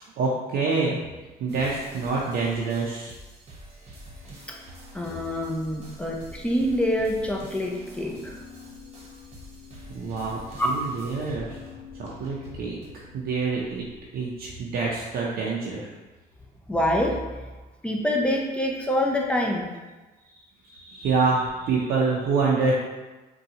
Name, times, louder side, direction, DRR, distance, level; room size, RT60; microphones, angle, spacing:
voice 1, 0.2-1.0 1.4-3.1 9.9-11.6 11.9-13.9 14.1-15.9 20.3-22.7, right 4 dB, 60° right, -4 dB, 0.5 m, -26 dB
sound 1, 1.5-12.9, right 1 dB, 40° right, 0.9 m, -47 dB
sound 2, 3.9-14.0, left 5 dB, 25° left, 1.4 m, -48 dB
voice 2, 4.9-8.4 10.6-10.7 16.7-17.5 17.8-19.7, left 1 dB, 5° left, 0 dB, 0.5 m, -26 dB
3.8 x 2.3 x 2.8 m, 1.2 s
cardioid pair, 110°, 17 cm